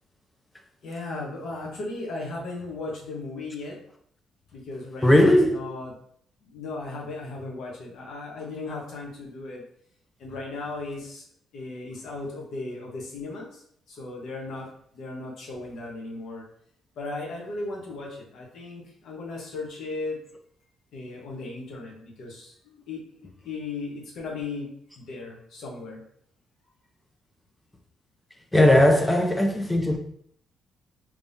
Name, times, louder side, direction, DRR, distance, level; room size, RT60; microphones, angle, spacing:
voice 1, 0.8-3.8 4.5-5.9 6.4-9.6 10.2-11.2 11.5-14.7 14.9-16.4 17.0-20.2 20.9-22.5 22.8-23.0 23.4-24.7 25.0-26.1, left 3 dB, 70° left, 1.2 m, -36 dB
voice 2, 5.0-5.6 28.5-30.0, left 1 dB, 10° left, 0.7 m, -18 dB
3.5 x 3.2 x 2.7 m
cardioid pair, 90°, 0 cm